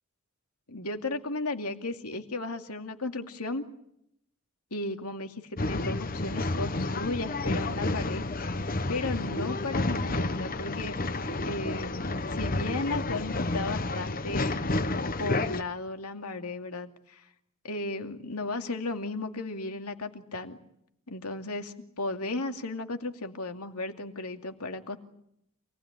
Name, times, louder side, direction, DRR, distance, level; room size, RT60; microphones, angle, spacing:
voice 1, 0.7-3.6 4.7-8.2 8.5-10.9 11.5-14.6 15.2-17.2 17.6-20.6 21.1-25.0, left 2 dB, 90° left, 5 dB, 2.5 m, -35 dB
Male speech man speaking / Chatter / Rattle, 5.6-15.6, left 2 dB, 40° left, 1.0 m, -30 dB
27.5 x 19.5 x 9.9 m, 0.76 s
head